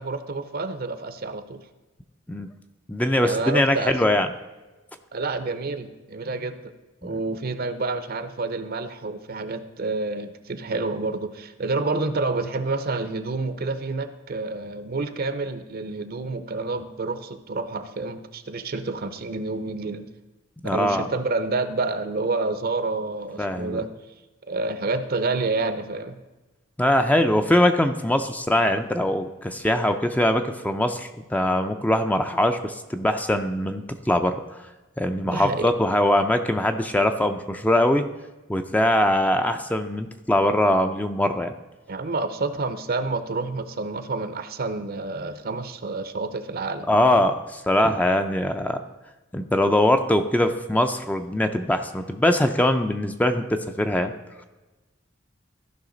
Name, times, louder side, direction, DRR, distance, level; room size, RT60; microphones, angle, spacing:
voice 1, 0.0-1.6 3.2-3.9 5.1-6.7 7.0-20.1 20.6-23.9 24.5-26.2 35.2-35.7 41.9-46.9, right 3 dB, 50° right, 10 dB, 0.7 m, -28 dB
voice 2, 2.9-4.3 7.0-7.1 20.6-21.1 23.4-23.8 26.8-34.4 35.0-38.0 38.5-41.5 46.9-48.8 49.3-54.1, left 1 dB, 10° left, 7 dB, 0.4 m, -22 dB
14.5 x 5.6 x 3.9 m, 1.1 s
head